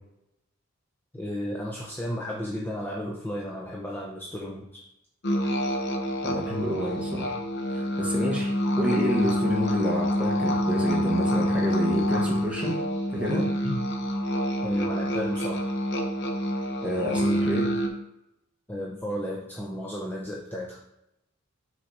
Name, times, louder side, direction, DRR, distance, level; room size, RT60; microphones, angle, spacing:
voice 1, 1.1-4.8 13.3-13.4 13.6-13.9 14.6-15.7 18.7-20.8, equal, 10° left, -3 dB, 0.6 m, -33 dB
sound 1, 5.2-17.9, equal, 55° left, 0.8 m, -27 dB
voice 2, 6.2-7.3 7.7-8.5 8.8-12.8 13.1-13.5 16.8-17.7, equal, 5° right, -3 dB, 1.4 m, -29 dB
6.2 x 4.0 x 4.7 m, 0.85 s
head